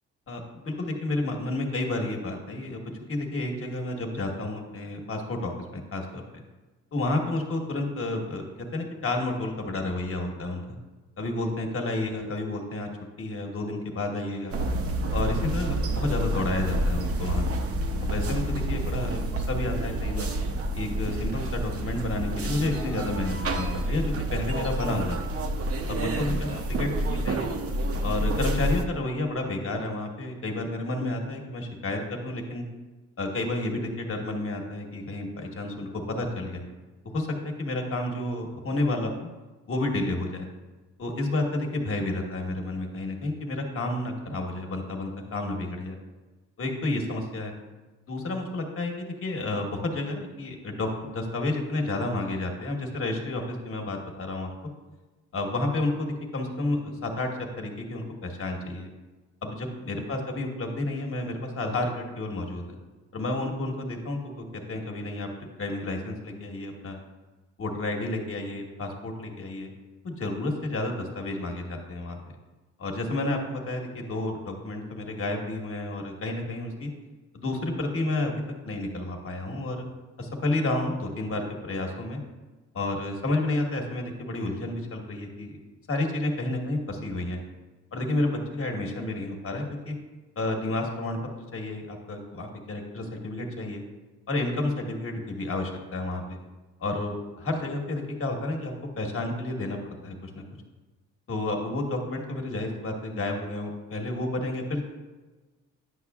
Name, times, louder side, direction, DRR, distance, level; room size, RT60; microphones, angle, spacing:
voice 1, 0.3-6.4 6.9-8.4 8.7-10.8 11.2-12.9 13.2-14.6 15.1-17.4 18.0-20.3 20.7-25.2 25.9-26.9 27.2-27.5 28.0-32.6 33.2-36.6 37.1-39.3 39.7-40.5 41.0-46.0 46.6-47.5 48.1-54.5 55.3-57.3 57.6-58.9 59.4-62.8 63.1-67.0 67.6-69.7 70.0-72.4 72.8-76.9 77.3-78.3 78.6-79.8 80.2-82.2 82.7-85.6 85.9-87.4 87.9-90.0 90.4-91.2 91.5-93.8 94.3-96.4 96.8-100.4 101.3-104.8, left 2 dB, 45° left, 2 dB, 1.3 m, -31 dB
sound 1, 14.5-28.9, right 1 dB, 50° right, 0.7 m, -28 dB
9.8 x 6.0 x 2.4 m, 1.2 s
cardioid pair, 90°, 30 cm